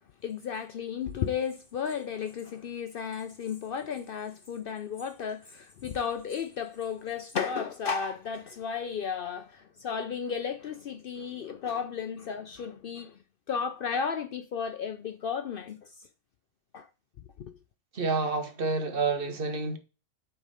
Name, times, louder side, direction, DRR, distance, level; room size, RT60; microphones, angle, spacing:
voice 1, 0.2-13.2 13.5-15.9 16.7-16.9 17.4-17.5, left 7 dB, 60° left, 0.6 m, -34 dB
voice 2, 17.9-19.8, right 3 dB, 50° right, 1.2 m, -29 dB
8.0 x 3.6 x 5.5 m
omnidirectional pair, 1.3 m